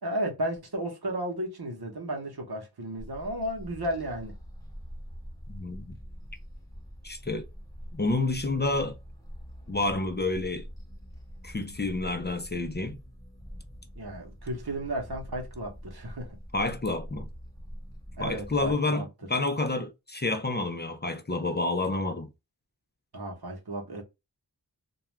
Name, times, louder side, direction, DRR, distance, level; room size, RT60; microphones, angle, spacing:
voice 1, 0.0-4.4 14.0-16.4 18.2-19.1 23.1-24.0, right 1 dB, 75° right, 0.9 m, -34 dB
sound 1, 3.0-18.8, equal, 10° left, 1.1 m, -44 dB
voice 2, 5.5-6.0 7.0-7.5 7.9-9.0 9.7-10.7 11.4-13.0 16.5-17.3 18.2-22.3, left 2 dB, 30° left, 0.4 m, -29 dB
2.3 x 2.2 x 3.0 m
wide cardioid pair, 40°, 38 cm